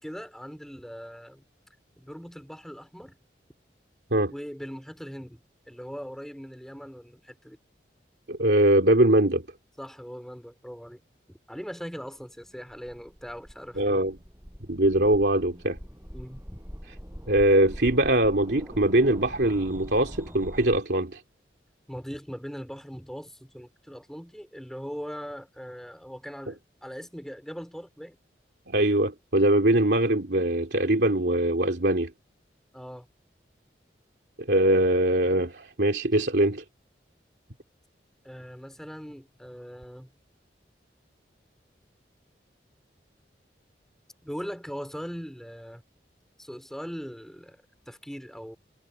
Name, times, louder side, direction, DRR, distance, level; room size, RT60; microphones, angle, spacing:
voice 1, 0.0-1.4 2.0-3.2 4.3-7.6 9.8-11.0 11.3-14.1 16.1-16.4 21.9-28.2 32.7-33.1 38.2-40.1 44.2-45.8 46.4-48.6, equal, ahead, 4.2 m, -40 dB
voice 2, 8.3-9.4 13.8-14.2 14.7-15.8 17.3-21.2 28.7-32.1 34.4-36.6, right 1 dB, 70° right, 2.7 m, -22 dB
sound 1, 12.4-20.8, equal, 15° right, 7.7 m, -43 dB
head